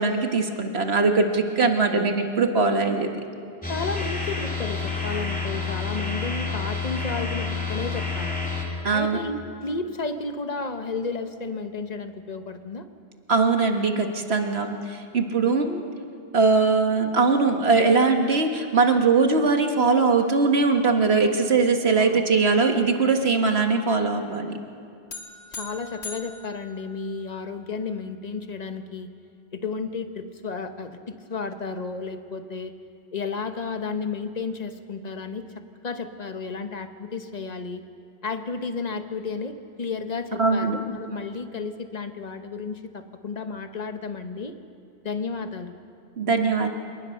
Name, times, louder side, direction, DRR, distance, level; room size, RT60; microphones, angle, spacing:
voice 1, 0.0-3.1 8.8-9.2 13.3-15.8 16.3-24.6 40.4-40.8 46.2-46.7, right 4 dB, 65° right, 4 dB, 1.8 m, -21 dB
sound 1, 3.6-8.6, left 4 dB, 5° left, 3.3 m, -29 dB
voice 2, 3.7-8.4 8.9-12.9 22.0-22.2 25.6-29.1 29.5-32.7 33.1-35.5 35.8-37.8 38.2-44.5 45.0-45.7, left 4 dB, 40° left, 8 dB, 1.2 m, -32 dB
sound 2, 25.1-27.6, left 3 dB, 70° left, 2.0 m, -41 dB
27.0 x 19.5 x 6.5 m, 2.5 s
omnidirectional pair, 1.1 m